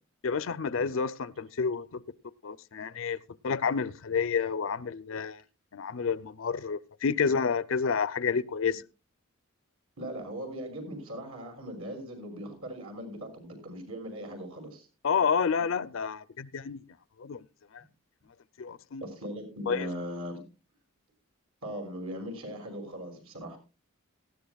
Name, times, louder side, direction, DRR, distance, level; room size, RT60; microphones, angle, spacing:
voice 1, 0.2-2.0 2.4-3.2 3.4-5.4 5.7-8.8 15.0-16.8 17.2-17.4 18.6-19.0 19.7-19.9, left 6 dB, 65° left, 0.5 m, -29 dB
voice 2, 10.0-14.9 19.0-20.4 21.6-23.6, equal, 85° right, 5.9 m, -39 dB
18.5 x 14.0 x 2.3 m
head